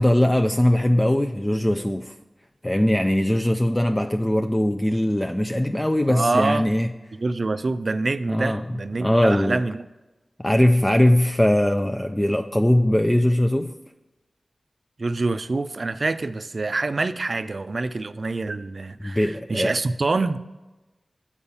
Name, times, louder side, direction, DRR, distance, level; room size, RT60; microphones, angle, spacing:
voice 1, 0.0-2.1 2.6-6.9 8.3-8.6 9.0-9.6 10.4-13.7 19.0-19.7, left 1 dB, 15° left, 5 dB, 0.4 m, -20 dB
voice 2, 6.1-6.7 7.1-9.8 15.0-20.4, right 3 dB, 60° right, 12 dB, 0.4 m, -26 dB
7.0 x 4.8 x 5.4 m, 1.1 s
cardioid pair, 40°, 0 cm